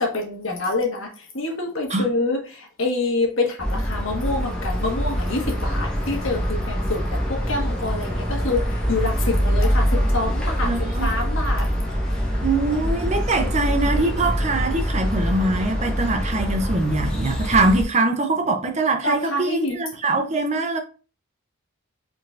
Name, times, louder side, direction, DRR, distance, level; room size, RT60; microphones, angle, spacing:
voice 1, 0.0-9.9 10.1-10.7 11.0-11.7 19.0-19.8, left 2 dB, 60° left, 1.4 m, -26 dB
sound 1, 3.6-17.8, equal, 5° left, 1.1 m, -24 dB
sound 2, 5.3-14.4, equal, 80° left, 1.4 m, -40 dB
voice 2, 10.6-11.1 12.4-20.8, right 2 dB, 30° right, 0.5 m, -23 dB
5.0 x 3.9 x 2.5 m
head